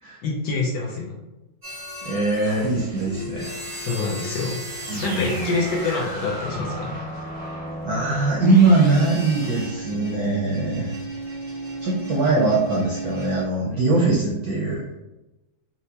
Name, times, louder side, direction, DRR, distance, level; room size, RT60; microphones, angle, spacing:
voice 1, 0.2-1.1 3.8-4.6 5.0-7.0 13.7-13.8, left 3 dB, 70° left, -2 dB, 1.1 m, -26 dB
sound 1, 1.6-13.4, right 1 dB, 35° right, 0.3 m, -34 dB
voice 2, 2.0-3.5 4.9-5.5 7.8-10.9 11.8-14.8, right 3 dB, 75° right, -3 dB, 0.8 m, -21 dB
4.3 x 2.1 x 2.7 m, 1.0 s
omnidirectional pair, 2.2 m